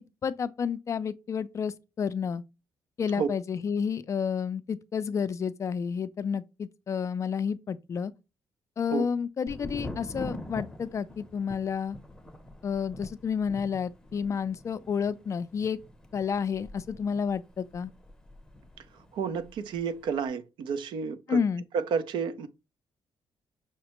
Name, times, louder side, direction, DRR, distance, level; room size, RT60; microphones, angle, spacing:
voice 1, 0.2-2.4 3.0-8.1 8.8-12.0 12.6-15.8 16.1-17.9 21.3-21.6, left 6 dB, 40° left, 0.3 m, -30 dB
Thunder, 9.5-19.1 19.4-20.1, left 1 dB, 10° left, 0.7 m, -44 dB
voice 2, 19.1-21.4 21.7-22.5, right 6 dB, 75° right, 0.5 m, -30 dB
5.7 x 2.1 x 2.9 m
cardioid pair, 125°, 8 cm